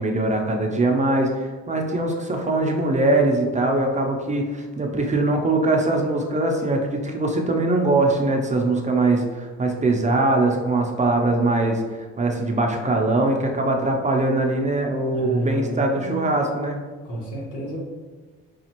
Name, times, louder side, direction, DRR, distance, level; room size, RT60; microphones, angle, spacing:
voice 1, 0.0-16.8, right 2 dB, 25° right, 2 dB, 0.5 m, -22 dB
voice 2, 15.1-15.9 17.0-17.8, equal, 85° left, -4 dB, 1.3 m, -29 dB
5.0 x 2.4 x 2.9 m, 1.4 s
cardioid pair, 90°, 30 cm